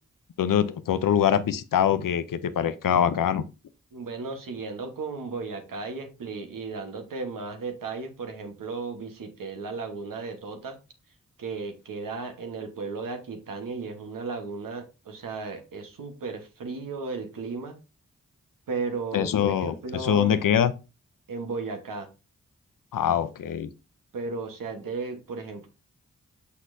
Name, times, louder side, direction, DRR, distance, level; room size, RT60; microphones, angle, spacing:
voice 1, 0.4-3.4 19.1-20.7 22.9-23.7, left 9 dB, 85° left, 0.6 m, -24 dB
voice 2, 3.9-10.8 11.4-17.8 18.7-20.3 21.3-22.1 24.1-25.7, right 4 dB, 90° right, 1.2 m, -35 dB
6.3 x 5.6 x 2.6 m
cardioid pair, 45°, 32 cm